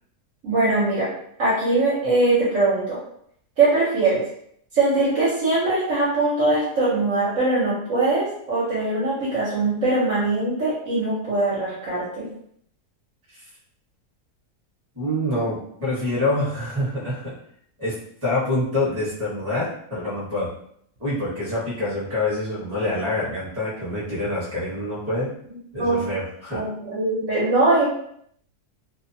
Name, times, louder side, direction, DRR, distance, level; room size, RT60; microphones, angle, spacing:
voice 1, 0.4-1.1 1.4-3.0 3.6-4.2 4.7-12.3 25.8-26.1 26.5-27.9, right 2 dB, 60° right, -7 dB, 1.0 m, -21 dB
voice 2, 14.9-17.4 17.8-20.5 21.0-25.3 25.7-26.6, left 1 dB, 10° right, -7 dB, 0.9 m, -26 dB
2.8 x 2.2 x 2.6 m, 0.68 s
omnidirectional pair, 1.7 m